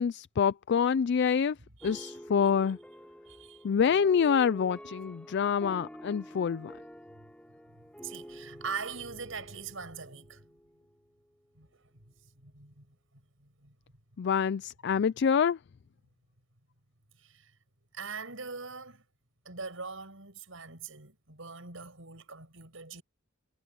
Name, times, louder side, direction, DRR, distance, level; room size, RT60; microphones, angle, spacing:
voice 1, 0.0-1.6 1.8-2.8 3.6-6.7 14.2-15.6, left 7 dB, 60° left, 0.4 m, -26 dB
sound 1, 1.8-11.0, equal, 5° left, 6.2 m, -48 dB
voice 2, 1.8-2.1 3.2-3.6 8.0-10.4 11.6-11.7 12.4-12.9 13.6-13.7 17.2-17.5 17.9-19.0 19.4-23.0, right 5 dB, 80° right, 6.2 m, -42 dB
head